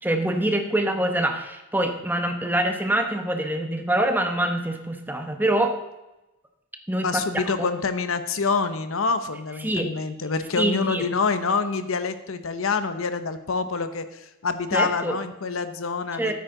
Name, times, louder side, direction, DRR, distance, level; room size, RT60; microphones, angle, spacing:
voice 1, 0.0-5.8 6.9-7.4 9.6-9.9 10.6-11.0 14.7-15.1 16.2-16.3, right 1 dB, 10° right, 5 dB, 1.1 m, -25 dB
voice 2, 7.0-16.3, left 4 dB, 80° left, 10 dB, 0.9 m, -26 dB
13.5 x 9.3 x 3.9 m, 0.97 s
head